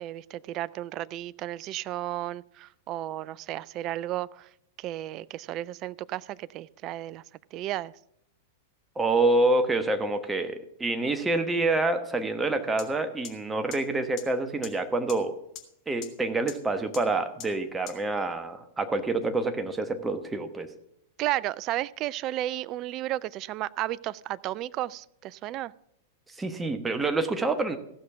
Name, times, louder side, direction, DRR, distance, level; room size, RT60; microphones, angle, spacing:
voice 1, 0.0-4.5 4.8-7.2 7.5-7.9 21.2-25.7, right 14 dB, 40° right, 20 dB, 0.3 m, -33 dB
voice 2, 9.0-15.3 15.9-20.7 26.4-27.8, right 2 dB, 15° right, 8 dB, 1.1 m, -27 dB
sound 1, 12.8-12.9 13.2-13.3 13.7-13.8 14.2-14.3 14.6-14.7 15.1-15.2 15.6-15.7 16.0-16.1 16.5-16.6 16.9-17.0 17.4-17.5 17.9-18.0, left 9 dB, 40° left, 1.5 m, -39 dB
14.5 x 6.5 x 5.8 m, 0.79 s
figure-of-eight pair, 95°, 0 cm